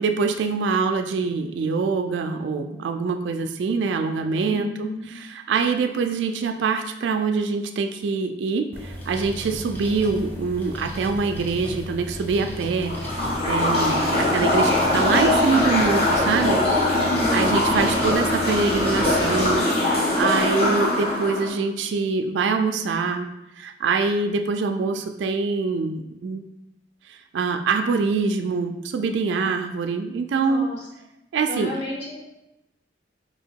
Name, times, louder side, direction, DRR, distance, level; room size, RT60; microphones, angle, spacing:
voice 1, 0.0-16.6 16.9-23.3 23.6-26.4 27.1-30.7 31.3-31.7, right 4 dB, 75° right, 6 dB, 0.3 m, -24 dB
voice 2, 4.5-5.2 17.0-18.0 30.3-30.7 31.5-32.3, left 1 dB, 70° left, -7 dB, 1.5 m, -33 dB
sound 1, 8.7-19.5, equal, 10° left, 0.6 m, -35 dB
sound 2, 12.8-21.5, left 1 dB, 30° left, 1.1 m, -22 dB
2.9 x 2.8 x 4.4 m, 0.89 s
head